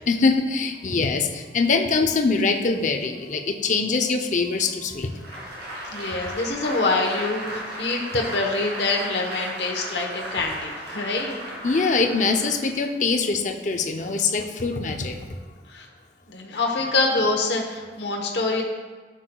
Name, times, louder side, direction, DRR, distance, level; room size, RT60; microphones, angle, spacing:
voice 1, 0.1-5.1 11.6-15.2, left 4 dB, 45° left, 5 dB, 0.6 m, -23 dB
Applause, 5.1-12.8, right 1 dB, 75° right, 2.1 m, -35 dB
voice 2, 5.9-11.4 15.7-15.9 16.3-18.6, left 3 dB, 75° left, 0 dB, 1.0 m, -25 dB
11.5 x 6.4 x 2.3 m, 1.4 s
head